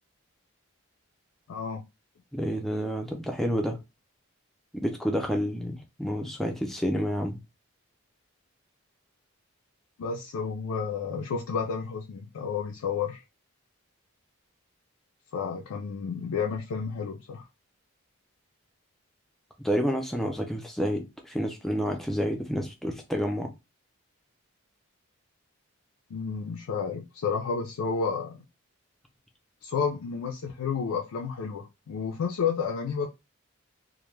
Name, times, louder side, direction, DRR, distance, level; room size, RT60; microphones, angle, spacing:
voice 1, 1.5-1.8 10.0-13.2 15.3-17.4 26.1-28.4 29.6-33.1, left 6 dB, 85° left, 0.4 m, -31 dB
voice 2, 2.3-3.8 4.7-7.4 19.6-23.5, equal, ahead, 0.3 m, -29 dB
2.2 x 2.1 x 3.1 m
head